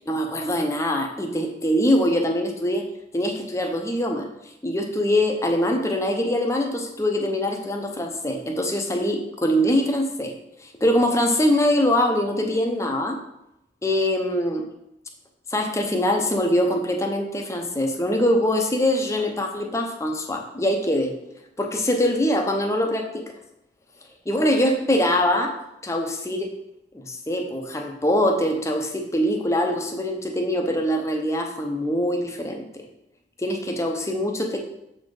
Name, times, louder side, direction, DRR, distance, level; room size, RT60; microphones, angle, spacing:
voice 1, 0.1-2.9 3.1-4.3 4.6-10.3 10.6-13.2 13.8-14.6 15.5-21.1 21.6-23.2 24.3-25.5 25.8-26.5 26.9-32.8 33.4-34.6, left 1 dB, 15° left, 3 dB, 0.8 m, -23 dB
7.0 x 4.3 x 4.8 m, 0.84 s
head